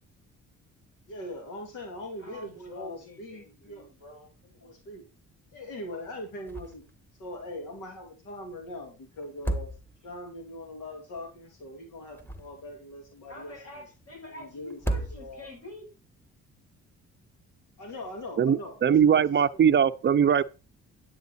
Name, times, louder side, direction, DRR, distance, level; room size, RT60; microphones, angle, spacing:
voice 1, 1.1-3.9 4.6-5.0 5.5-6.8 7.2-9.7 10.0-13.6 14.3-15.5 17.8-19.2 19.5-19.7, left 1 dB, 85° left, 2.4 m, -41 dB
voice 2, 2.2-4.7 13.3-15.9, left 2 dB, 55° left, 7.3 m, -46 dB
sound 1, 6.5-7.0 7.3-7.4 9.2-10.3 12.0-12.8 14.7-15.6, right 1 dB, 5° left, 1.4 m, -34 dB
voice 3, 18.4-20.4, right 8 dB, 40° right, 0.5 m, -21 dB
9.6 x 8.7 x 4.1 m
cardioid pair, 90°, 30 cm